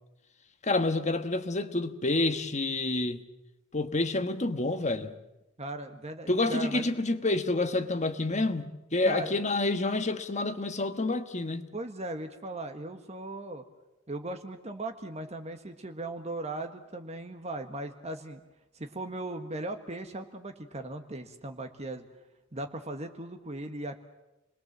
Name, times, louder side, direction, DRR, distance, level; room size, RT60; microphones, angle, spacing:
voice 1, 0.6-3.2 3.7-5.1 6.3-11.7, left 2 dB, 30° left, 9 dB, 1.4 m, -28 dB
voice 2, 5.6-6.8 9.0-9.4 11.7-13.6 14.1-18.4 18.7-22.1 22.5-24.0, right 2 dB, 30° right, 6 dB, 1.5 m, -38 dB
29.5 x 21.0 x 7.4 m, 0.97 s
head